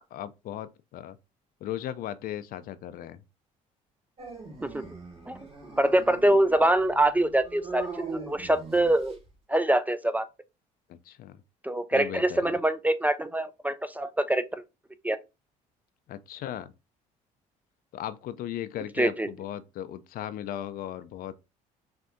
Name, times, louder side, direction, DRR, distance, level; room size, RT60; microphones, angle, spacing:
voice 1, 0.1-1.2 1.6-3.2 11.0-11.4 11.9-12.6 16.1-16.7 17.9-21.3, left 11 dB, 60° left, 0.4 m, -37 dB
Dog, 4.2-9.3, right 4 dB, 35° right, 1.6 m, -41 dB
voice 2, 5.8-9.2 9.5-10.3 11.6-14.6 15.0-15.2 19.0-19.3, right 1 dB, 10° right, 0.3 m, -24 dB
5.6 x 2.6 x 2.6 m
supercardioid pair, 70°, 17 cm